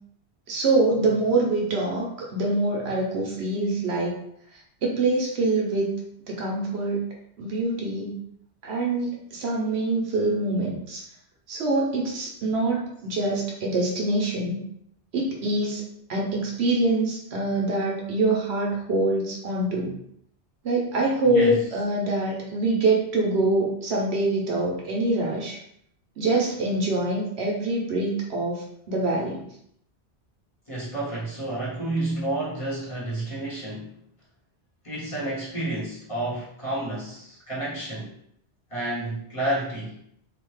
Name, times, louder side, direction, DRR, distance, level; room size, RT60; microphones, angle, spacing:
voice 1, 0.5-4.1 4.8-5.9 6.3-7.0 7.4-8.2 8.6-11.0 11.5-14.6 15.1-15.8 16.1-20.0 20.6-25.6 26.2-29.4, right 2 dB, 70° right, -1 dB, 0.9 m, -25 dB
voice 2, 21.2-21.6 30.7-33.9 34.8-38.1 38.7-40.0, right 1 dB, 30° left, -8 dB, 0.9 m, -30 dB
2.8 x 2.1 x 3.1 m, 0.71 s
omnidirectional pair, 1.1 m